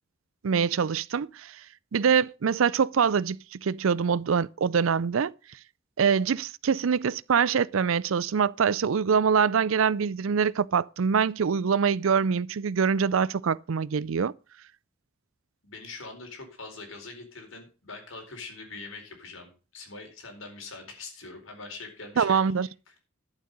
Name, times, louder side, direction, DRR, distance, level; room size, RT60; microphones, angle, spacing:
voice 1, 0.4-1.5 1.9-5.3 6.0-14.3 22.2-22.7, right 6 dB, 75° right, 0.5 m, -24 dB
voice 2, 15.6-22.9, left 3 dB, 75° left, 4.3 m, -43 dB
11.5 x 8.0 x 5.2 m
head